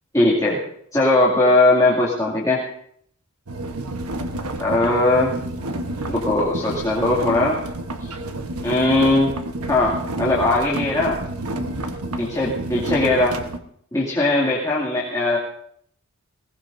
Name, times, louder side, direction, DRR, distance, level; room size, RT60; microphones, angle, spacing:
voice 1, 0.1-0.6 0.9-2.6 4.6-5.3 6.1-7.6 8.0-8.1 8.6-9.3 9.7-11.2 12.2-13.4 13.9-15.4, left 2 dB, 15° left, -6 dB, 2.3 m, -19 dB
sound 1, 3.5-13.6, right 1 dB, 90° right, 1.1 m, -29 dB
21.0 x 19.0 x 2.6 m, 0.65 s
head